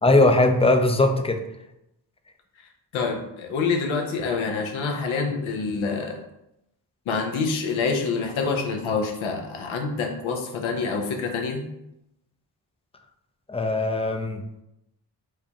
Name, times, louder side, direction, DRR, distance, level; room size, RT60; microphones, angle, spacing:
voice 1, 0.0-1.4 13.5-14.4, left 2 dB, 15° left, 6 dB, 0.4 m, -19 dB
voice 2, 2.9-6.2 7.1-11.6, left 4 dB, 80° left, 3 dB, 0.7 m, -26 dB
4.7 x 2.3 x 2.9 m, 0.86 s
supercardioid pair, 45°, 47 cm